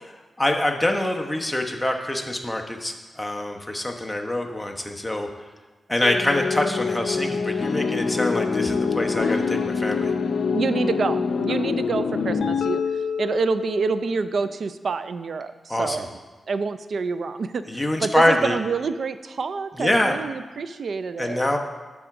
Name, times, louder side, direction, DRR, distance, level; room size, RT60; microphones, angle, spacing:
voice 1, 0.4-5.3 5.9-10.1 15.7-16.0 17.7-18.5 19.8-20.2 21.2-21.6, left 1 dB, 10° left, 2 dB, 1.0 m, -24 dB
sound 1, 6.0-14.5, left 5 dB, 85° left, 0.5 m, -25 dB
voice 2, 10.5-16.1 16.5-21.4, right 5 dB, 70° right, 12 dB, 0.4 m, -27 dB
10.0 x 3.6 x 5.9 m, 1.3 s
cardioid pair, 70°, 0 cm